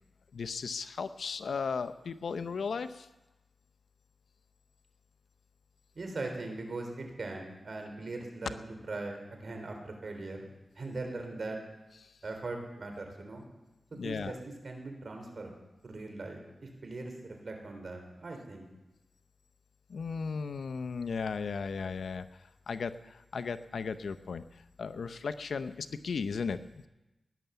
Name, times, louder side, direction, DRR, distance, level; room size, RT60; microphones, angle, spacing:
voice 1, 0.3-3.1 13.9-14.4 19.9-22.3 22.7-24.4 24.8-26.6, left 5 dB, 80° left, 12 dB, 0.7 m, -35 dB
voice 2, 5.9-10.5 10.7-11.6 12.2-13.5 13.9-15.5 15.8-18.7, right 2 dB, 60° right, 3 dB, 3.7 m, -40 dB
16.5 x 10.5 x 6.9 m, 1.0 s
cardioid pair, 50°, 0 cm